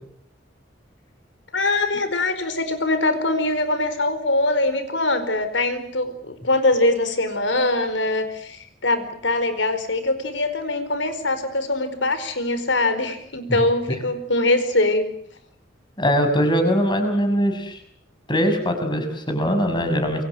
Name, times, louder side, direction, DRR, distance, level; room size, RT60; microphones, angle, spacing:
voice 1, 1.5-15.1, left 2 dB, 80° left, 11 dB, 4.8 m, -22 dB
voice 2, 16.0-17.8 18.3-20.2, equal, 25° left, 7 dB, 6.3 m, -21 dB
28.5 x 24.0 x 7.7 m, 0.67 s
head